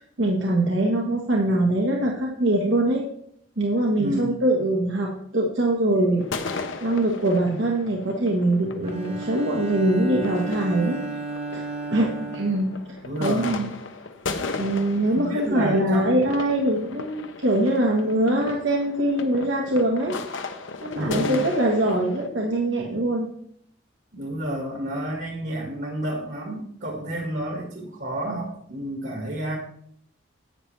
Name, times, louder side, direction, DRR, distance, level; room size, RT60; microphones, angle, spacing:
voice 1, 0.0-3.0 3.6-11.0 11.5-12.8 13.2-13.7 14.6-20.1 20.8-23.3, right 1 dB, 75° right, -1 dB, 1.4 m, -23 dB
voice 2, 4.0-4.4 13.0-13.6 15.1-16.1 21.0-21.4 24.1-29.6, right 1 dB, 60° right, 0 dB, 1.9 m, -30 dB
sound 1, 6.2-22.3, left 4 dB, 90° left, 1.0 m, -36 dB
Bowed string instrument, 8.8-13.4, right 3 dB, 30° right, 0.9 m, -34 dB
11.0 x 8.7 x 3.3 m, 0.68 s
head